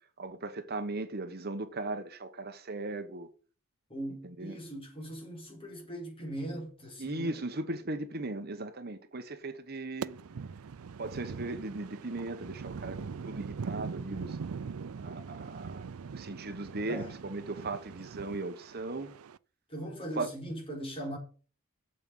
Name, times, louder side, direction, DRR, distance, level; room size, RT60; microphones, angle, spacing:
voice 1, 0.2-3.3 4.4-4.6 7.0-10.2 11.0-14.4 15.0-15.9 16.1-19.1 20.2-20.3, right 2 dB, 45° right, 1.1 m, -37 dB
voice 2, 3.9-7.4 16.9-17.2 19.7-21.2, right 1 dB, 25° left, 4.5 m, -40 dB
sound 1, 10.0-19.4, right 5 dB, 85° right, 0.5 m, -41 dB
8.8 x 7.6 x 7.1 m
head